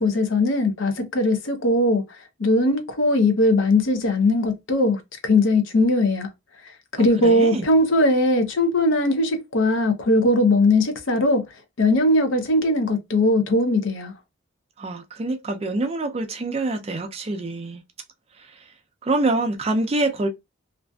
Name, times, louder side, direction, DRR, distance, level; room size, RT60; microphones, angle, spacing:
voice 1, 0.0-2.0 2.4-6.3 6.9-11.5 11.8-14.1, left 2 dB, 75° left, 0.6 m, -20 dB
voice 2, 6.9-7.7 14.8-17.8 18.4-18.6 19.0-20.3, right 2 dB, 30° right, 0.4 m, -26 dB
2.5 x 2.4 x 2.2 m
head